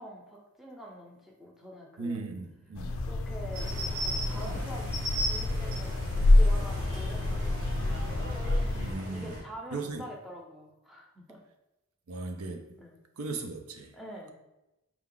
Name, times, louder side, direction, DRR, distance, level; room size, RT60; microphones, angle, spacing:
voice 1, 0.0-2.2 3.0-8.2 9.1-11.4 12.8-13.0 13.9-14.3, equal, ahead, 0.6 m, -46 dB
voice 2, 2.0-2.9 4.4-4.6 8.8-9.4 9.7-10.0 12.1-12.8 13.2-14.0, right 3 dB, 90° right, 0.6 m, -37 dB
sound 1, 2.8-8.9, left 2 dB, 70° left, 0.4 m, -27 dB
sound 2, 3.5-9.4, equal, 70° right, 1.2 m, -36 dB
4.6 x 2.4 x 3.7 m
head